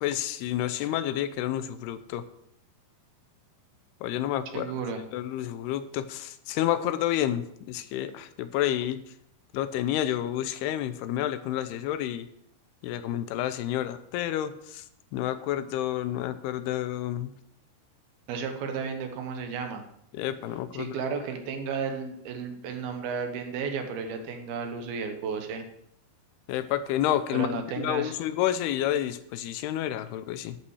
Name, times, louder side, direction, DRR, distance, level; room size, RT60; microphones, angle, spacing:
voice 1, 0.0-2.3 4.0-4.7 5.1-9.0 9.5-12.3 12.8-14.9 15.1-17.3 20.1-21.0 26.5-27.5 27.8-30.6, left 12 dB, 85° left, 12 dB, 2.6 m, -29 dB
voice 2, 4.5-5.0 18.3-19.8 20.7-25.6 27.3-28.1, right 5 dB, 70° right, 5 dB, 2.9 m, -33 dB
11.5 x 8.4 x 4.8 m, 0.72 s
omnidirectional pair, 4.7 m